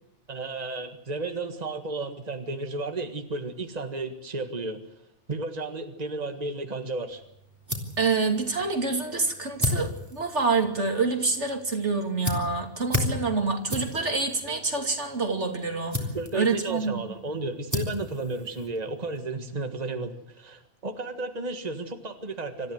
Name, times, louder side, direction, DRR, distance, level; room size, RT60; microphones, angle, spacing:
voice 1, 0.3-4.8 5.3-7.2 16.1-22.7, right 3 dB, 35° right, 6 dB, 1.8 m, -33 dB
sound 1, 7.1-19.2, left 2 dB, 15° right, 3.5 m, -35 dB
voice 2, 8.0-16.1 16.3-17.0, right 4 dB, 80° right, 4 dB, 3.0 m, -27 dB
26.0 x 14.5 x 8.1 m, 0.81 s
omnidirectional pair, 1.2 m